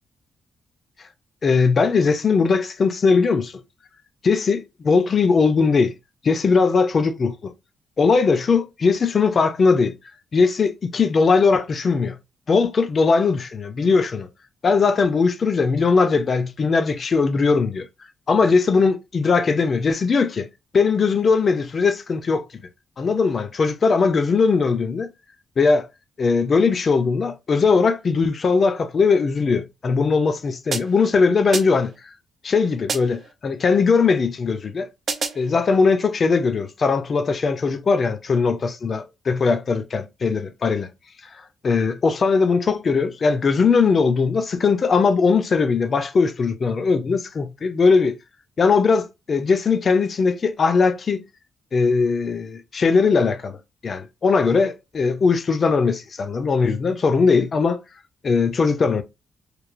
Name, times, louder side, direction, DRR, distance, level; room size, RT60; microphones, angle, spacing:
voice 1, 1.4-3.5 4.2-5.9 6.2-7.5 8.0-9.9 10.3-12.2 12.5-14.3 14.6-17.9 18.3-20.5 20.7-22.4 23.0-25.1 25.6-25.9 26.2-31.9 32.4-34.9 35.4-40.9 41.6-48.1 48.6-51.2 51.7-53.6 53.8-57.8 58.2-59.0, left 4 dB, 35° left, 0.3 m, -19 dB
sound 1, 30.7-31.1 31.5-32.0 32.9-33.3 35.1-35.5, right 5 dB, 40° right, 0.4 m, -29 dB
3.0 x 2.1 x 2.4 m
wide cardioid pair, 175°, 0 cm